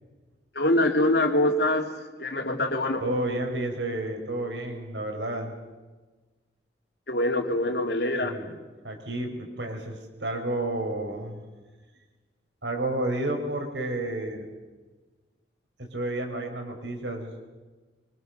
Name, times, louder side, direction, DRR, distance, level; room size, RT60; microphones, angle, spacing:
voice 1, 0.5-1.9 2.2-3.0 7.1-8.4, left 1 dB, 65° left, 4 dB, 2.9 m, -24 dB
voice 2, 3.0-5.5 8.2-8.5 8.8-11.4 12.6-14.5 15.8-17.3, right 1 dB, 80° right, 3 dB, 5.1 m, -31 dB
24.5 x 23.5 x 6.7 m, 1.3 s
head